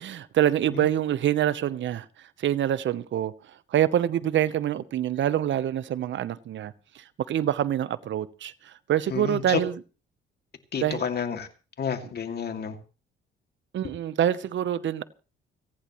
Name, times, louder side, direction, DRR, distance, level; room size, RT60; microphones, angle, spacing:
voice 1, 0.0-9.7 10.8-11.0 13.7-15.0, right 11 dB, 60° right, 0.9 m, -26 dB
voice 2, 9.1-9.6 10.7-11.5 11.8-12.7, left 7 dB, 50° left, 2.5 m, -30 dB
30.0 x 10.0 x 3.1 m
supercardioid pair, 75°, 21 cm